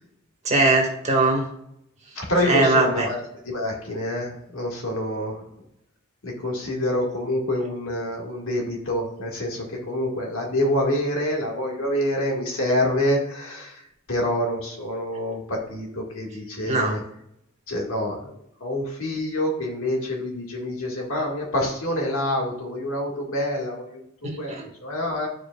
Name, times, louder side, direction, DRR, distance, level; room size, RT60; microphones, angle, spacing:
voice 1, 0.4-1.5 2.5-3.1 16.6-17.0 24.2-24.6, right 2 dB, 35° right, 0 dB, 1.6 m, -21 dB
voice 2, 2.1-3.2 3.4-5.4 6.2-13.8 14.1-17.0 17.7-18.3 18.6-24.5 24.8-25.3, left 1 dB, 70° left, 0 dB, 1.8 m, -26 dB
11.5 x 4.8 x 2.4 m, 0.76 s
head